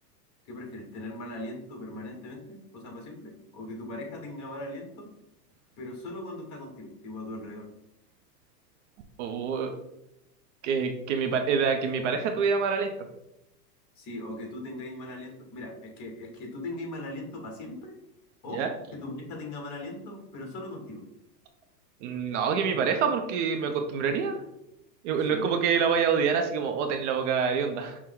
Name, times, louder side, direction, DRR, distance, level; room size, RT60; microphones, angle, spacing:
voice 1, 0.4-5.1 5.8-7.7 13.9-17.9 18.4-21.0 25.3-25.5, left 1 dB, 35° left, 1 dB, 1.4 m, -39 dB
voice 2, 9.2-9.7 10.6-12.9 18.5-18.7 22.0-24.4 25.0-28.0, right 6 dB, 45° right, 5 dB, 0.5 m, -26 dB
6.0 x 2.1 x 3.6 m, 0.86 s
supercardioid pair, 135°, 50 cm